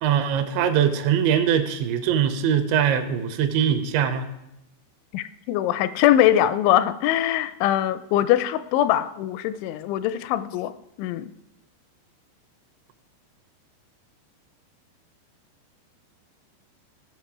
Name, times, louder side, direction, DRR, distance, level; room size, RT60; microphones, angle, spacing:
voice 1, 0.0-4.3, right 8 dB, 80° right, 9 dB, 3.0 m, -22 dB
voice 2, 5.1-10.7 11.0-11.3, left 12 dB, 85° left, 14 dB, 2.9 m, -22 dB
16.5 x 6.4 x 4.7 m, 0.88 s
omnidirectional pair, 5.4 m